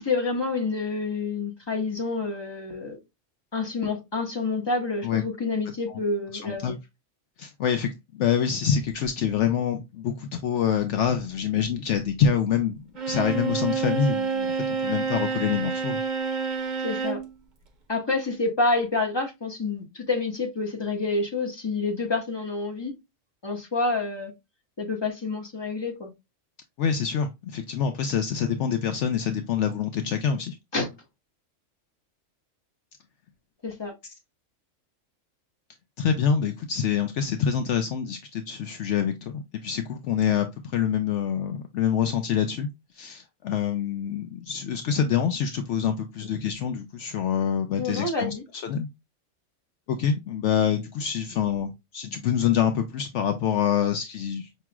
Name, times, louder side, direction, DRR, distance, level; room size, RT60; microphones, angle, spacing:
voice 1, 0.0-3.0 3.5-6.8 16.8-17.2 17.9-22.9 23.4-24.3 24.8-26.1 30.7-30.9 33.6-33.9 47.8-48.4, left 3 dB, 20° left, 1.4 m, -28 dB
voice 2, 6.4-6.8 7.4-16.0 26.8-30.6 36.0-42.7 42.9-48.9 49.9-54.5, left 8 dB, 70° left, 0.9 m, -26 dB
Bowed string instrument, 13.0-17.3, right 5 dB, 45° right, 0.8 m, -28 dB
5.8 x 3.0 x 2.2 m
omnidirectional pair, 1.3 m